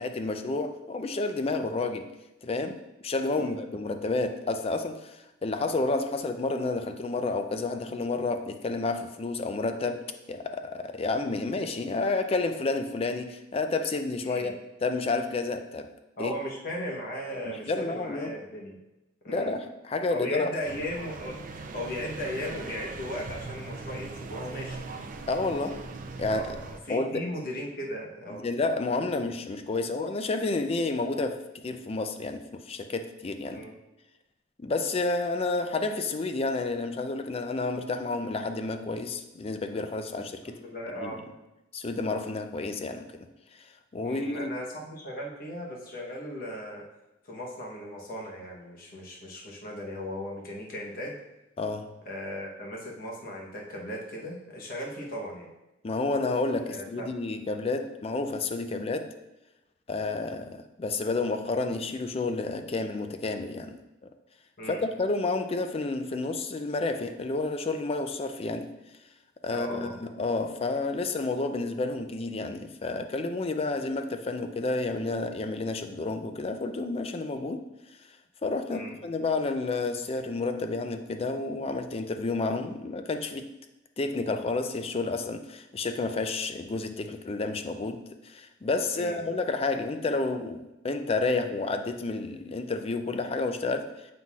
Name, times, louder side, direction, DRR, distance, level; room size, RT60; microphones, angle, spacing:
voice 1, 0.0-2.1 2.4-14.5 14.8-15.9 16.2-16.3 17.4-18.3 19.3-20.5 25.3-25.8 26.2-26.6 26.9-27.2 28.3-33.6 34.6-40.6 41.0-41.2 41.7-43.3 43.9-44.5 51.6-52.0 55.8-59.1 59.9-63.8 64.7-68.7 69.4-77.6 78.4-83.5 84.0-93.9, left 3 dB, 30° left, 8 dB, 0.4 m, -30 dB
voice 2, 16.2-18.8 19.2-19.5 20.1-24.8 26.3-26.5 26.8-28.5 33.5-33.8 40.4-41.2 44.0-46.8 47.3-51.2 52.0-55.5 56.7-57.1 64.6-64.8 69.5-70.0 78.7-78.9 88.9-89.2, equal, 50° left, -2 dB, 1.0 m, -37 dB
sound 1, 20.6-26.8, right 3 dB, 45° right, 0.5 m, -40 dB
7.6 x 5.6 x 2.4 m, 0.96 s
head